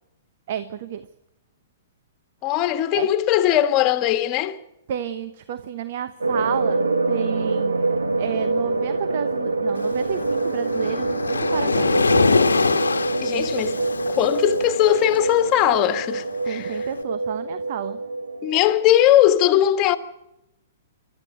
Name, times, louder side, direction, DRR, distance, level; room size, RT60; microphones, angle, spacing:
voice 1, 0.5-1.1 2.9-3.1 4.9-12.0 16.4-18.0, right 9 dB, 50° right, 1.0 m, -31 dB
voice 2, 2.4-4.6 13.2-13.8 14.1-16.8 18.4-20.0, left 12 dB, 35° left, 1.6 m, -19 dB
sound 1, 6.2-18.8, right 3 dB, 80° right, 1.5 m, -25 dB
Waves surf, 9.8-16.9, left 4 dB, 80° left, 1.2 m, -25 dB
26.0 x 13.0 x 7.9 m
figure-of-eight pair, 115°, 0 cm